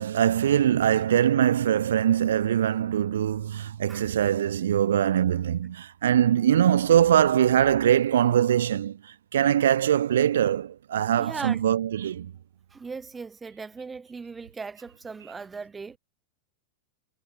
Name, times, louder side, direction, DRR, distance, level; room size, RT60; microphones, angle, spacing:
voice 1, 0.0-12.3, right 10 dB, 65° right, 0.9 m, -22 dB
voice 2, 11.2-11.6 12.7-16.0, right 4 dB, 15° right, 0.6 m, -38 dB
figure-of-eight pair, 90°, 0 cm